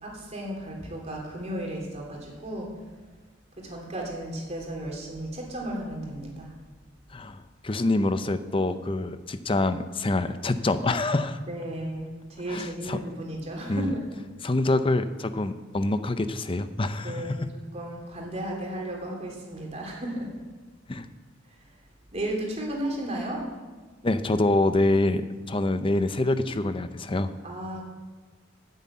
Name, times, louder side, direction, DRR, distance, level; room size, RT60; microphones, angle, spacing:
voice 1, 0.0-2.7 3.6-6.5 11.5-14.2 17.0-20.3 21.5-21.6 22.1-23.4 27.4-27.8, right 1 dB, 35° right, -1 dB, 3.1 m, -34 dB
voice 2, 7.1-11.4 12.5-13.0 13.7-13.9 14.4-17.2 20.9-21.1 24.0-27.3, left 2 dB, 25° left, 11 dB, 0.6 m, -26 dB
9.7 x 8.0 x 8.5 m, 1.4 s
head